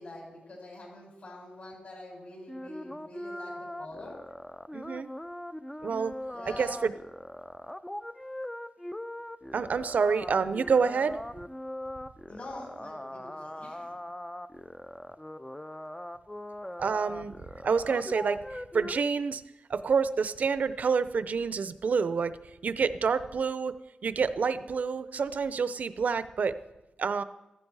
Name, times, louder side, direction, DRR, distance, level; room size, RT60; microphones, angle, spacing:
voice 1, 0.0-4.2 6.3-6.8 12.3-14.0, left 1 dB, 60° left, -2 dB, 7.0 m, -45 dB
sound 1, 2.5-19.0, left 1 dB, 5° left, 0.4 m, -40 dB
voice 2, 4.7-5.1 5.8-6.2 6.5-6.9 9.5-11.2 16.8-17.3 17.6-19.4 19.7-22.4 22.6-23.7 24.0-26.6 27.0-27.2, right 5 dB, 65° right, 13 dB, 0.6 m, -28 dB
15.5 x 14.5 x 4.8 m, 1.0 s
wide cardioid pair, 145°, 3 cm